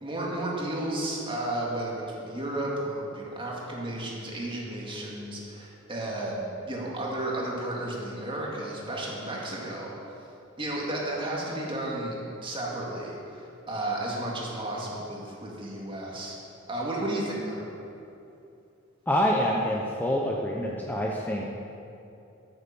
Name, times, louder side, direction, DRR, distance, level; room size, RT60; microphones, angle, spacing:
voice 1, 0.0-10.1 10.6-12.2 12.4-16.4 16.7-17.6, right 1 dB, 25° right, -3 dB, 2.1 m, -33 dB
voice 2, 19.1-21.5, equal, 10° left, -2 dB, 0.7 m, -26 dB
8.8 x 8.7 x 6.9 m, 2.8 s
head